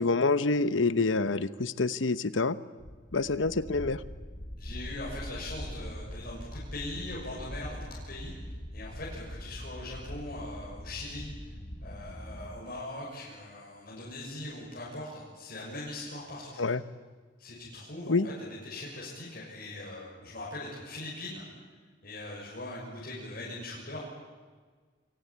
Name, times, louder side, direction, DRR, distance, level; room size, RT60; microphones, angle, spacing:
voice 1, 0.0-2.6 3.1-4.0 16.6-16.8 18.1-18.3, left 3 dB, 80° left, 14 dB, 1.0 m, -27 dB
sound 1, 2.8-12.6, equal, 35° left, 1.7 m, -42 dB
voice 2, 4.6-8.3 8.7-11.5 11.8-16.6 17.4-21.5 22.0-24.0, left 2 dB, 50° left, -5 dB, 6.6 m, -41 dB
26.5 x 23.5 x 8.7 m, 1.5 s
head